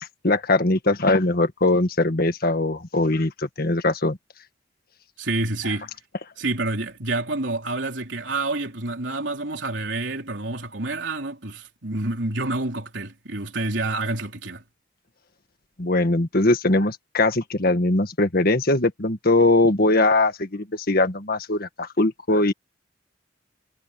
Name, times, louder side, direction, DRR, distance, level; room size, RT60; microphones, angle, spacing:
voice 1, 0.2-4.2 15.8-22.5, left 2 dB, 55° left, 1.7 m, -21 dB
voice 2, 5.2-5.9 6.4-14.6, right 2 dB, 70° right, 3.9 m, -28 dB
head